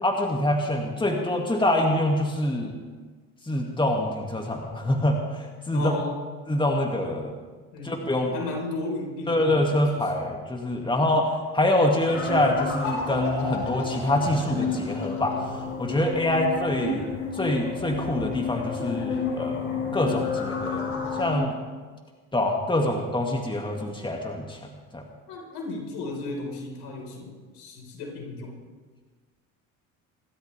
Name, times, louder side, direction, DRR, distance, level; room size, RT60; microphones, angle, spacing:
voice 1, 0.0-2.7 3.4-5.9 6.5-7.4 7.8-8.3 9.3-21.6 22.3-24.6 24.9-25.0, left 1 dB, 10° left, 2 dB, 2.4 m, -25 dB
voice 2, 5.7-6.2 7.7-8.0 8.3-10.0 11.0-11.2 25.3-28.5, left 3 dB, 65° left, 0 dB, 5.2 m, -35 dB
sound 1, 12.1-21.3, left 5 dB, 90° left, 4.6 m, -31 dB
27.0 x 13.0 x 3.6 m, 1.4 s
hypercardioid pair, 65°, 42 cm